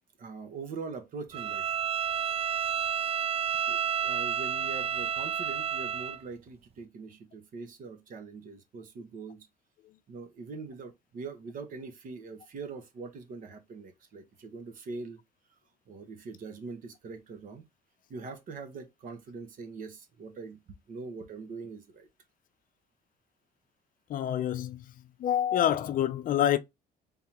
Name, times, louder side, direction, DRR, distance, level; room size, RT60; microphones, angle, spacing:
voice 1, 0.2-1.6 3.7-9.4 10.1-15.2 15.9-17.6 18.1-20.6 20.9-22.1, right 4 dB, 55° right, 1.3 m, -42 dB
Bowed string instrument, 1.3-6.2, right 8 dB, 35° right, 0.4 m, -30 dB
voice 2, 24.1-24.8 25.2-26.6, left 10 dB, 55° left, 0.5 m, -27 dB
3.8 x 3.5 x 2.9 m
cardioid pair, 110°, 17 cm